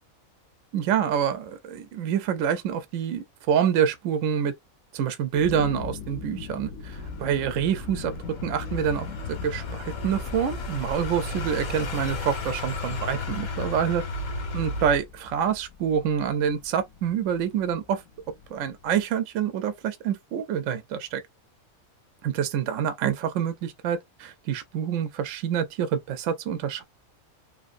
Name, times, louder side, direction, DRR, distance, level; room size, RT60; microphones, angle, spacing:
voice 1, 0.7-4.5 4.9-8.1 8.4-14.0 14.5-18.0 18.5-21.2 22.2-26.8, right 8 dB, 70° right, 0.9 m, -27 dB
sound 1, 5.3-19.0, left 6 dB, 60° left, 0.8 m, -41 dB
sound 2, 6.9-15.0, left 2 dB, 80° left, 1.5 m, -34 dB
3.1 x 2.5 x 2.4 m
omnidirectional pair, 1.5 m